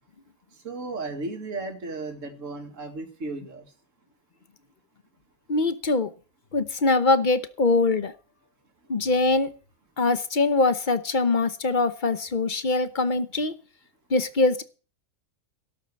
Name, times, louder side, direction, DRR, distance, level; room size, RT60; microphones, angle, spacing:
voice 1, 0.5-3.7, right 3 dB, 60° right, 4 dB, 2.4 m, -35 dB
voice 2, 5.5-6.1 6.5-8.1 8.9-9.5 10.0-13.5 14.1-14.6, left 3 dB, 40° left, 12 dB, 1.0 m, -23 dB
12.5 x 6.8 x 9.5 m, 0.37 s
omnidirectional pair, 1.5 m